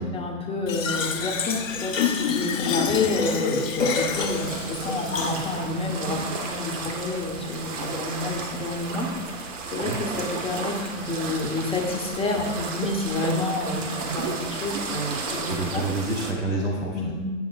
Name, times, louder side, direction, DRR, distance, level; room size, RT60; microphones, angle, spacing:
voice 1, 0.0-15.8 16.9-17.1, left 2 dB, 15° left, 0 dB, 0.8 m, -29 dB
Fill (with liquid), 0.7-5.7, left 5 dB, 75° left, 0.7 m, -27 dB
sound 1, 3.8-16.3, right 4 dB, 70° right, 1.0 m, -33 dB
voice 2, 15.5-17.1, right 2 dB, 5° right, -5 dB, 0.3 m, -28 dB
8.4 x 5.5 x 2.3 m, 1.4 s
figure-of-eight pair, 95°, 39 cm